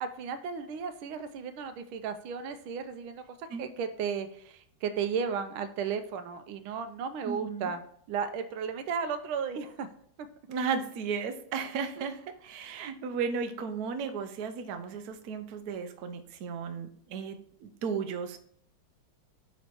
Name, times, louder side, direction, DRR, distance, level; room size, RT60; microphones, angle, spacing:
voice 1, 0.0-7.8 8.1-9.9 10.2-10.3 12.0-12.1, right 6 dB, 85° right, 9 dB, 1.5 m, -34 dB
voice 2, 7.3-7.7 10.5-12.2 12.4-18.4, right 5 dB, 65° right, 8 dB, 0.9 m, -34 dB
9.3 x 3.1 x 4.3 m, 0.62 s
omnidirectional pair, 2.3 m